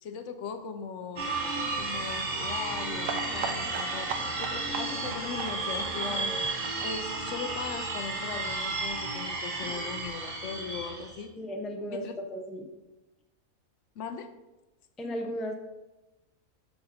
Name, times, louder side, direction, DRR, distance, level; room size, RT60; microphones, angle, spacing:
voice 1, 0.0-1.3 1.8-6.4 6.8-11.3 11.9-12.1 14.0-14.3, left 6 dB, 65° left, 8 dB, 0.9 m, -39 dB
sound 1, 1.2-11.2, right 3 dB, 35° right, 1.0 m, -33 dB
sound 2, 3.0-8.6 8.8-8.9 9.2-9.3 9.5-9.6, right 6 dB, 70° right, 1.0 m, -38 dB
voice 2, 11.4-12.0 12.3-12.7 15.0-15.5, equal, ahead, 2 dB, 0.4 m, -35 dB
5.7 x 5.2 x 4.2 m, 1.0 s
omnidirectional pair, 1.5 m